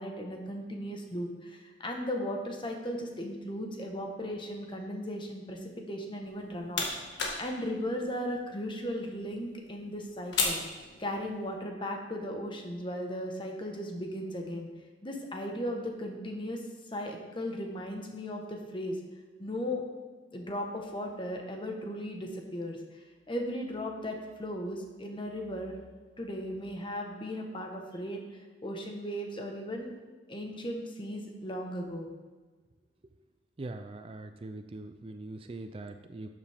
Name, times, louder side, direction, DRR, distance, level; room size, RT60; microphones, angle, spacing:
voice 1, 0.0-10.6 11.0-14.7 15.0-16.6 16.9-19.0 19.4-19.8 20.3-25.8 26.2-28.2 28.6-29.9 30.3-32.1, equal, 30° left, 2 dB, 1.2 m, -36 dB
sound 1, 6.2-11.5, left 3 dB, 85° left, 1.8 m, -37 dB
voice 2, 33.6-36.3, right 2 dB, 30° right, 8 dB, 0.4 m, -42 dB
12.0 x 7.1 x 3.5 m, 1.4 s
head